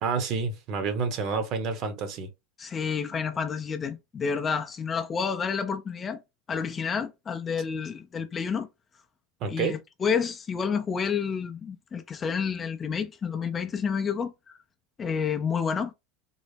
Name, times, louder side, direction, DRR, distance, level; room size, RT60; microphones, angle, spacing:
voice 1, 0.0-2.3 9.4-9.8, right 5 dB, 45° right, 0.8 m, -29 dB
voice 2, 2.6-6.2 6.5-8.7 9.5-14.6 15.0-15.9, left 6 dB, 20° left, 0.4 m, -29 dB
3.9 x 2.0 x 3.3 m
supercardioid pair, 140°, 0 cm